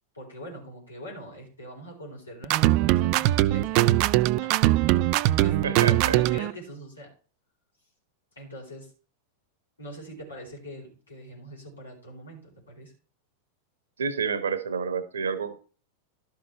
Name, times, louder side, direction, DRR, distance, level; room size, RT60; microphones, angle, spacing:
voice 1, 0.1-5.0 5.4-7.1 8.4-8.9 9.8-12.9, right 1 dB, 80° left, -2 dB, 4.5 m, -43 dB
sound 1, 2.4-6.5, right 15 dB, 45° right, 0.4 m, -21 dB
voice 2, 5.6-6.2 14.0-15.6, right 6 dB, 70° right, 12 dB, 1.1 m, -29 dB
12.0 x 6.0 x 4.4 m, 0.39 s
figure-of-eight pair, 90°, 0 cm